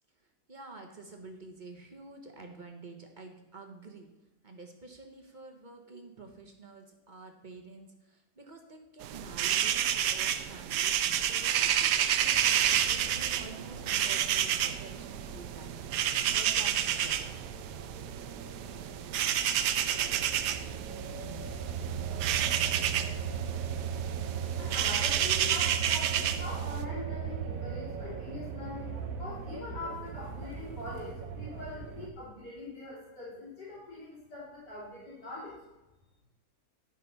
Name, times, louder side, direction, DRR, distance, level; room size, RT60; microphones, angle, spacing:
voice 1, 0.5-4.1 4.4-12.1 12.4-15.8 16.1-17.5, right 3 dB, 35° right, 3 dB, 1.1 m, -49 dB
sound 1, 9.0-26.8, right 10 dB, 85° right, 1.2 m, -30 dB
sound 2, 12.2-32.1, right 7 dB, 60° right, 1.3 m, -38 dB
voice 2, 24.3-35.6, left 2 dB, 90° left, -9 dB, 4.0 m, -43 dB
10.5 x 5.5 x 5.6 m, 1.0 s
omnidirectional pair, 1.8 m